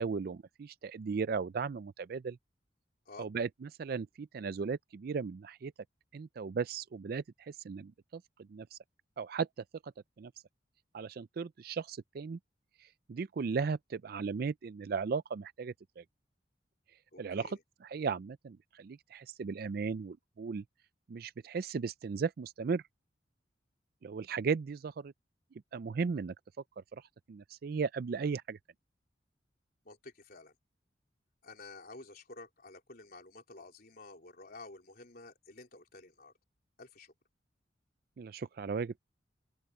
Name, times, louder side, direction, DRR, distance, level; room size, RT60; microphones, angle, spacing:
voice 1, 0.0-2.4 3.2-5.7 6.1-8.2 8.5-8.8 9.2-9.5 9.8-9.9 10.2-10.3 10.9-12.4 12.8-16.0 17.2-20.6 21.1-22.8 24.0-25.1 25.7-26.3 26.9-27.0 27.3-28.6 38.2-38.9, right 5 dB, 55° right, 0.4 m, -36 dB
voice 2, 17.1-17.6 29.8-30.5 31.4-36.3 36.8-37.1, left 3 dB, 55° left, 4.1 m, -51 dB
open air
head